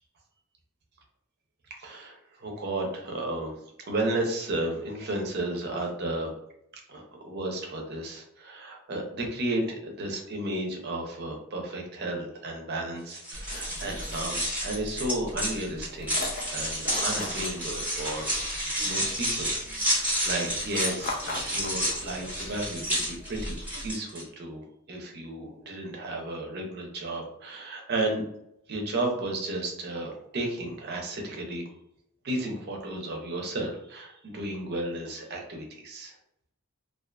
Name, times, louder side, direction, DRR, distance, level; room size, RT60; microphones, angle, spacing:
voice 1, 1.7-3.5 3.8-6.3 6.9-16.1 16.5-18.3 18.8-19.5 19.8-23.0 23.3-23.6 23.8-28.2 28.7-31.6 32.2-36.1, right 1 dB, 50° right, 1 dB, 0.6 m, -33 dB
sound 1, 13.1-24.2, equal, 5° right, 0.8 m, -31 dB
sound 2, 13.3-23.9, left 1 dB, 40° left, 0.5 m, -40 dB
2.4 x 2.4 x 2.2 m, 0.76 s
head